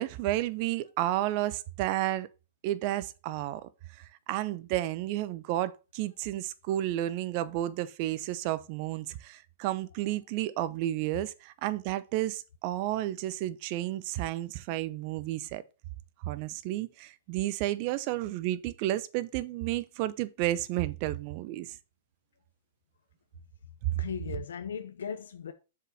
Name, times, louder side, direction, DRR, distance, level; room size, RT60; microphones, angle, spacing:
voice 1, 0.0-2.3 2.6-3.7 4.0-15.6 16.2-21.8, right 14 dB, 45° right, 0.8 m, -32 dB
voice 2, 23.9-25.5, left 7 dB, 85° left, 0.9 m, -37 dB
6.7 x 5.0 x 5.6 m
hypercardioid pair, 130°, 0 cm